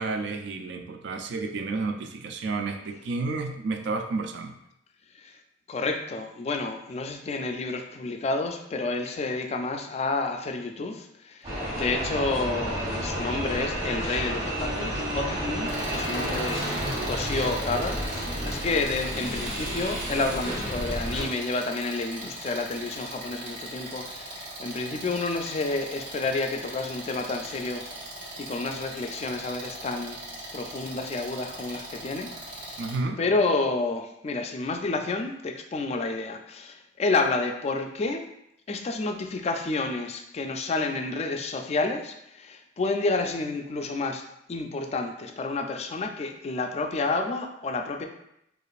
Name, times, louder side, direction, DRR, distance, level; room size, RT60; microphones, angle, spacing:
voice 1, 0.0-4.6 32.8-33.2, right 3 dB, 60° right, 5 dB, 0.3 m, -31 dB
voice 2, 5.7-28.0 28.4-30.2 30.5-32.8 33.2-38.2 38.7-44.2 44.5-48.1, left 3 dB, 35° left, 5 dB, 0.3 m, -30 dB
sound 1, 11.4-21.2, equal, 30° right, 1.3 m, -31 dB
sound 2, 15.7-32.9, right 1 dB, 75° right, 1.4 m, -39 dB
4.8 x 2.5 x 2.4 m, 0.80 s
head